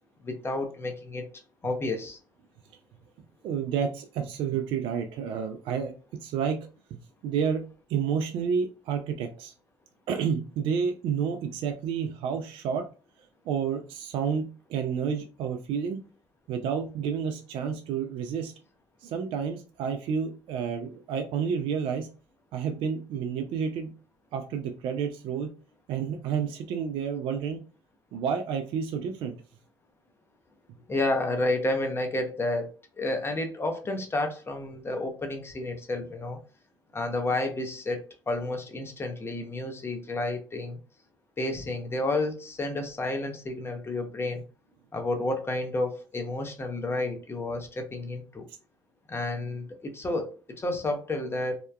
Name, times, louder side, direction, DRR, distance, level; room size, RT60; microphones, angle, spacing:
voice 1, 0.2-1.2 1.6-2.2 30.9-36.4 36.9-40.8 41.4-44.4 44.9-48.5 49.1-51.6, left 2 dB, 25° left, 5 dB, 0.7 m, -31 dB
voice 2, 3.4-5.9 6.2-6.6 6.9-7.6 7.9-9.5 10.1-12.9 13.5-16.0 16.5-18.5 19.0-22.1 22.5-23.9 24.3-25.5 25.9-27.6 28.1-29.4, right 7 dB, 65° right, 5 dB, 0.4 m, -30 dB
2.8 x 2.2 x 2.2 m, 0.35 s
hypercardioid pair, 60°, 9 cm